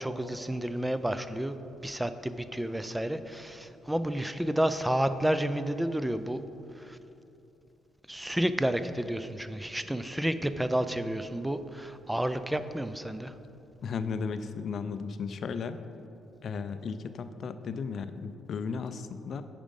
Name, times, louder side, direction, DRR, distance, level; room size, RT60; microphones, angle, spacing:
voice 1, 0.0-1.5 1.8-6.4 6.8-7.0 8.1-13.3, right 1 dB, 5° right, 11 dB, 0.4 m, -30 dB
voice 2, 13.8-15.8 16.4-19.4, left 5 dB, 60° left, 10 dB, 0.4 m, -35 dB
8.8 x 5.1 x 5.4 m, 2.8 s
cardioid pair, 90°, 0 cm